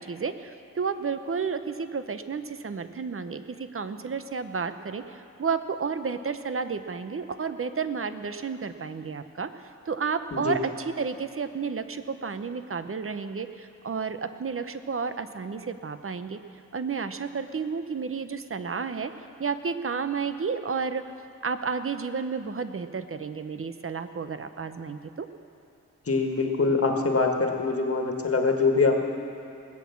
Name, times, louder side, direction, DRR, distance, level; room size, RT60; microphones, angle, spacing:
voice 1, 0.0-16.4 16.7-19.1 19.4-21.0 21.4-25.3, right 5 dB, 40° right, 10 dB, 0.8 m, -31 dB
voice 2, 26.1-29.0, left 4 dB, 45° left, 3 dB, 1.7 m, -24 dB
19.5 x 8.6 x 7.2 m, 2.7 s
wide cardioid pair, 80°, 33 cm